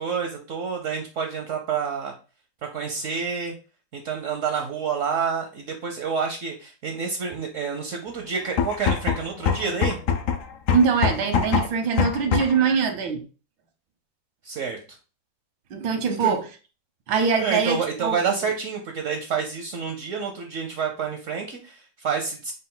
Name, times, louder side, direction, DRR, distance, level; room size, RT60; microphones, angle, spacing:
voice 1, 0.0-2.1 2.7-3.5 3.9-10.0 14.4-14.8 16.1-16.3 17.4-22.5, right 6 dB, 70° right, 0.7 m, -28 dB
sound 1, 8.4-12.7, left 6 dB, 80° left, 0.7 m, -24 dB
voice 2, 10.7-13.2 15.7-16.4 17.1-18.4, right 5 dB, 85° right, 1.6 m, -23 dB
5.2 x 2.3 x 3.7 m
omnidirectional pair, 2.0 m